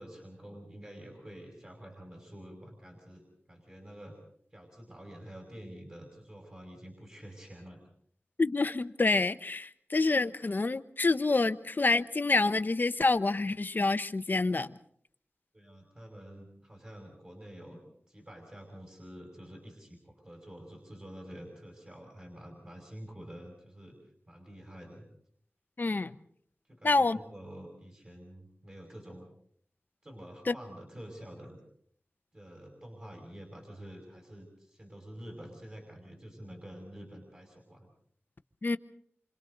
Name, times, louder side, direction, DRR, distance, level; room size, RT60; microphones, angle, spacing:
voice 1, 0.0-4.2 4.5-7.8 15.5-17.8 18.1-24.0 24.3-25.1 26.7-29.3 30.0-31.6 32.3-37.9, equal, 30° right, 0 dB, 5.6 m, -48 dB
voice 2, 8.4-14.7 25.8-26.1 26.8-27.2 30.5-30.6 38.6-38.8, left 3 dB, 45° left, 11 dB, 0.9 m, -27 dB
28.0 x 26.0 x 4.0 m, 0.63 s
wide cardioid pair, 85°, 4 cm